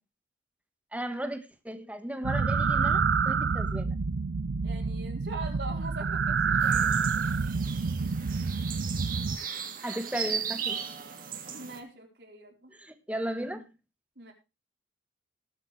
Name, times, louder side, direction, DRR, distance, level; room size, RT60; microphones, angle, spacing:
voice 1, 0.9-4.0 9.8-10.9 12.7-13.7, right 1 dB, 10° right, 1.4 m, -36 dB
sound 1, 2.2-9.4, right 5 dB, 85° right, 0.6 m, -28 dB
voice 2, 4.6-7.0 11.5-12.7 14.2-14.3, right 2 dB, 70° right, 4.4 m, -42 dB
sound 2, 6.6-11.8, right 7 dB, 50° right, 1.9 m, -37 dB
19.5 x 7.8 x 3.3 m
head